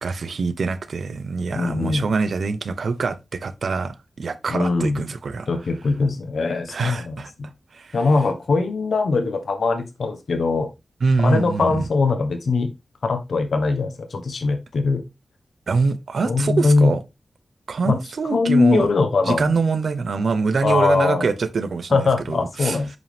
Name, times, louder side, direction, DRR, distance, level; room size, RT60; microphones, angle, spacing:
voice 1, 0.0-5.5 6.7-7.3 7.7-8.0 11.0-11.9 15.7-17.0 17.7-18.9 19.3-22.8, right 4 dB, 80° right, 0.9 m, -24 dB
voice 2, 1.5-2.1 4.5-5.0 5.5-7.5 7.9-10.7 11.2-12.7 13.0-15.0 16.2-16.9 17.9-18.0 18.3-19.5 20.6-21.3 21.9-22.9, left 3 dB, 80° left, 1.3 m, -21 dB
8.1 x 5.4 x 3.5 m
wide cardioid pair, 85°, 0 cm